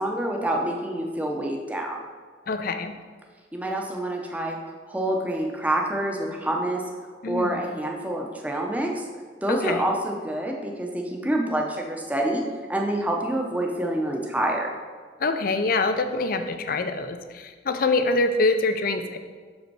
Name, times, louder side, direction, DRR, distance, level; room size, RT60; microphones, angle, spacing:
voice 1, 0.0-2.0 3.5-4.6 4.9-6.8 7.3-9.1 9.4-12.4 12.7-14.7, right 1 dB, 10° right, 1 dB, 0.7 m, -27 dB
voice 2, 2.5-2.9 7.2-7.6 9.5-9.8 15.2-19.2, left 3 dB, 50° left, 8 dB, 0.5 m, -25 dB
6.4 x 5.2 x 4.7 m, 1.5 s
head